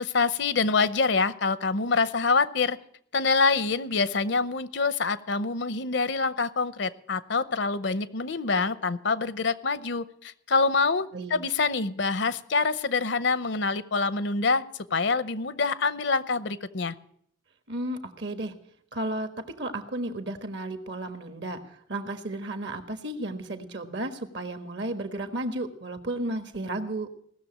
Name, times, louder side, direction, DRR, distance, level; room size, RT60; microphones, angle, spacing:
voice 1, 0.0-2.8 3.1-14.6 14.9-16.9, left 4 dB, 65° left, 14 dB, 0.7 m, -26 dB
voice 2, 17.7-18.5 18.9-19.3 19.6-27.1, right 1 dB, 60° right, 8 dB, 1.4 m, -33 dB
18.0 x 6.8 x 8.7 m, 0.69 s
head